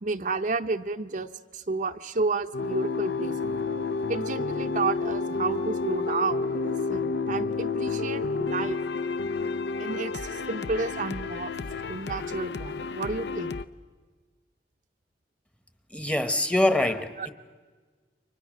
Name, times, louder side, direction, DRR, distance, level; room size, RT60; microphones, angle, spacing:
voice 1, 0.0-3.5 4.1-8.8 9.8-11.5 11.9-13.5 17.2-17.3, right 3 dB, 45° right, 0.7 m, -31 dB
sound 1, 2.5-13.6, left 4 dB, 70° left, 0.7 m, -30 dB
voice 2, 15.9-17.3, left 1 dB, 5° left, 1.0 m, -24 dB
29.5 x 24.5 x 6.3 m
head